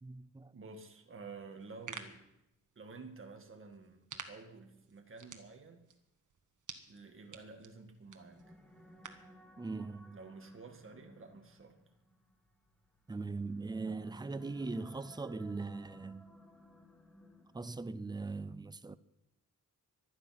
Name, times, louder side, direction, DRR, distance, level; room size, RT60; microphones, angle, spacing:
voice 1, 0.0-0.5 9.6-10.2 13.1-16.3 17.5-19.0, right 3 dB, 15° right, 0.5 m, -40 dB
voice 2, 0.5-2.2 2.8-5.9 6.9-8.6 10.1-11.8, right 4 dB, 40° right, 1.9 m, -51 dB
sound 1, 1.5-9.4, right 6 dB, 65° right, 1.5 m, -52 dB
sound 2, 8.0-17.9, equal, 5° left, 2.0 m, -60 dB
24.0 x 9.8 x 5.9 m
wide cardioid pair, 165°, 32 cm